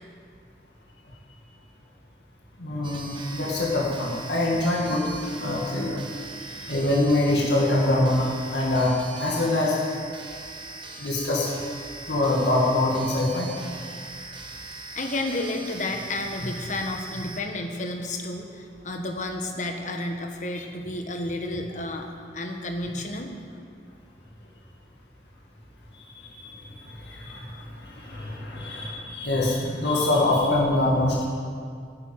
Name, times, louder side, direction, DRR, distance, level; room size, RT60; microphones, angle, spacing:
voice 1, 2.6-5.0 5.4-6.0 6.5-9.8 11.0-11.6 12.1-13.5 25.9-31.3, left 2 dB, 75° left, -4 dB, 2.2 m, -24 dB
sound 1, 2.8-17.4, right 3 dB, 30° right, 1.2 m, -40 dB
voice 2, 14.9-22.1 22.3-23.3, left 1 dB, 45° left, 3 dB, 1.4 m, -31 dB
11.0 x 9.1 x 9.0 m, 2.2 s
head